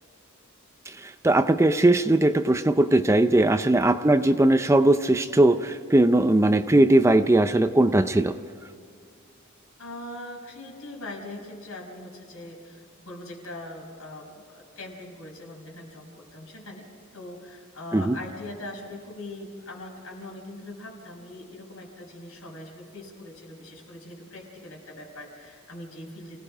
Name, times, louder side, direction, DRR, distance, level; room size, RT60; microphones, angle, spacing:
voice 1, 0.9-8.3 17.9-18.2, right 1 dB, 15° right, 10 dB, 0.5 m, -19 dB
voice 2, 9.8-26.4, left 1 dB, 70° left, -1 dB, 5.7 m, -41 dB
29.0 x 18.0 x 5.0 m, 2.4 s
head